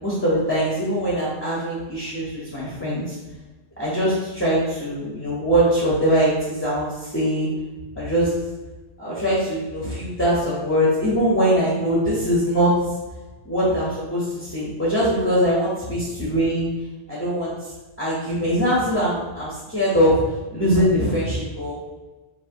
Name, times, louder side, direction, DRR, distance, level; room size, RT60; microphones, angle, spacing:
voice 1, 0.0-3.2 3.8-6.9 7.1-7.5 8.0-8.3 9.0-12.8 13.4-16.7 17.1-17.7 18.0-20.2 20.5-21.7, equal, 15° left, -7 dB, 1.0 m, -22 dB
4.9 x 2.9 x 3.0 m, 1.2 s
omnidirectional pair, 1.1 m